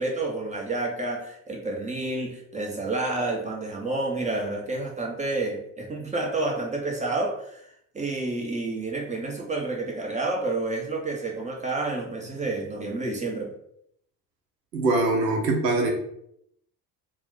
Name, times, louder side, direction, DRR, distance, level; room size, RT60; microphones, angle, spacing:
voice 1, 0.0-7.7 7.9-13.5, right 2 dB, 15° right, 0 dB, 0.5 m, -29 dB
voice 2, 14.7-15.9, right 2 dB, 85° right, 1 dB, 0.7 m, -23 dB
2.5 x 2.2 x 3.6 m, 0.73 s
figure-of-eight pair, 50°, 50 cm